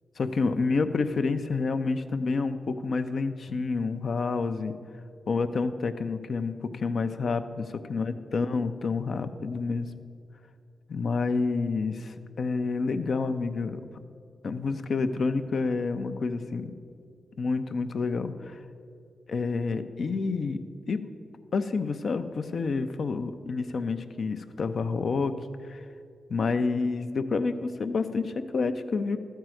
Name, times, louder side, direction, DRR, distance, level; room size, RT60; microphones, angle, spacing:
voice 1, 0.2-4.7 5.3-9.9 10.9-13.8 14.4-16.7 17.4-18.6 19.3-21.1 21.5-25.4 25.6-25.8 26.3-29.2, left 4 dB, 65° left, 9 dB, 0.6 m, -29 dB
13.0 x 4.6 x 7.7 m, 2.4 s
cardioid pair, 55°, 0 cm